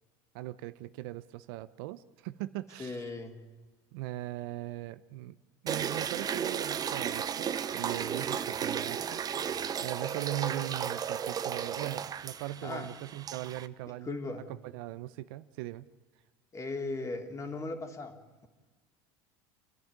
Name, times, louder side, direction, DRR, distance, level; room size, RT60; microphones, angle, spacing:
voice 1, 0.3-3.0 3.9-5.4 5.6-9.5 9.8-14.2 14.7-15.9, right 15 dB, 75° right, 14 dB, 0.8 m, -39 dB
voice 2, 2.8-3.4 12.6-12.9 14.0-14.5 16.5-18.5, left 3 dB, 25° left, 4 dB, 3.0 m, -38 dB
sound 1, 5.7-13.7, right 8 dB, 30° right, 0.8 m, -34 dB
29.0 x 11.0 x 9.6 m, 1.3 s
supercardioid pair, 105°, 12 cm